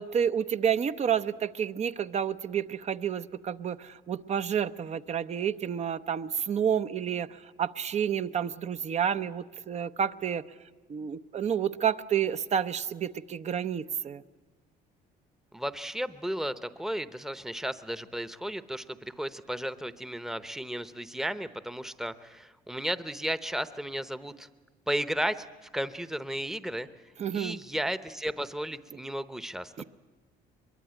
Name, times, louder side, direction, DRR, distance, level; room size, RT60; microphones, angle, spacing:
voice 1, 0.0-10.4 10.9-14.2 27.2-27.6 29.8-29.9, right 8 dB, 40° right, 12 dB, 0.8 m, -30 dB
voice 2, 15.5-24.5 24.9-25.5 25.7-26.9 27.3-29.7, equal, ahead, 13 dB, 0.9 m, -34 dB
23.0 x 23.0 x 9.0 m, 1.2 s
cardioid pair, 110°, 17 cm